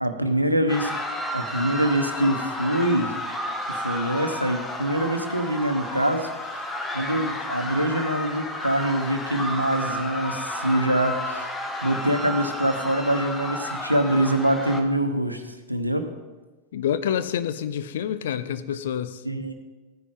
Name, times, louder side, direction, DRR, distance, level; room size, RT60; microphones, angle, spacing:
voice 1, 0.0-0.9 1.3-3.1 3.7-6.6 6.9-11.5 11.8-16.1 19.2-19.5, right 1 dB, 85° right, 7 dB, 0.9 m, -24 dB
sound 1, 0.7-14.8, left 1 dB, 10° left, 1.2 m, -32 dB
voice 2, 16.7-19.2, left 9 dB, 60° left, 13 dB, 0.6 m, -27 dB
15.0 x 9.9 x 3.7 m, 1.2 s
figure-of-eight pair, 90°, 0 cm